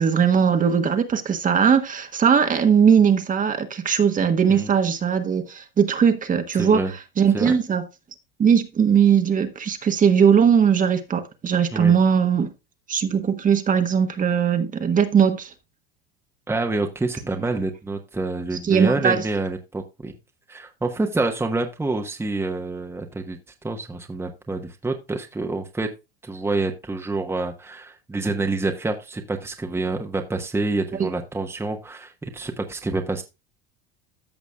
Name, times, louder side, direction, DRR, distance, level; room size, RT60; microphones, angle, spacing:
voice 1, 0.0-6.8 7.2-7.8 8.4-12.5 12.9-15.5 18.6-19.2 31.0-31.1, right 7 dB, 25° right, 1.3 m, -19 dB
voice 2, 6.5-6.9 7.3-7.6 11.7-11.9 16.5-20.1 20.5-23.4 23.6-25.9 26.2-33.2, right 3 dB, 10° right, 1.1 m, -27 dB
14.0 x 6.0 x 2.3 m
supercardioid pair, 105°, 29 cm